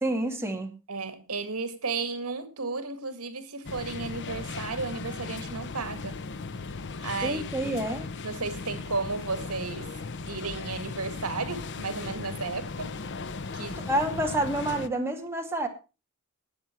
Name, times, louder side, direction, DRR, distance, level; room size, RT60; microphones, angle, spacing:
voice 1, 0.0-0.7 7.2-8.1 13.9-15.7, right 1 dB, 10° right, 2.3 m, -28 dB
voice 2, 0.9-6.2 7.0-7.8 8.2-9.9 10.3-12.9 13.5-13.9, right 4 dB, 80° right, 2.1 m, -34 dB
sound 1, 3.6-14.9, left 4 dB, 55° left, 0.8 m, -37 dB
19.0 x 7.4 x 4.5 m
head